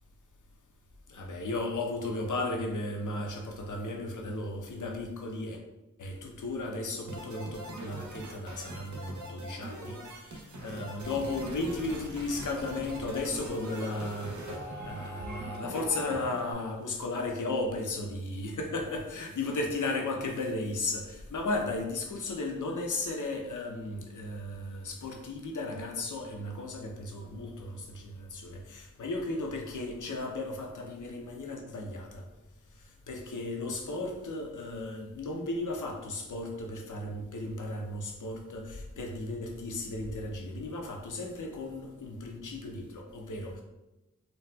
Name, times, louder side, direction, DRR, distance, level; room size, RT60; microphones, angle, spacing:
voice 1, 1.1-5.6 6.0-32.3 32.8-43.6, left 2 dB, 80° left, 2 dB, 0.6 m, -35 dB
sound 1, 7.1-16.5, right 1 dB, 70° right, 0.6 m, -41 dB
3.9 x 2.2 x 2.2 m, 1.0 s
wide cardioid pair, 55°, 30 cm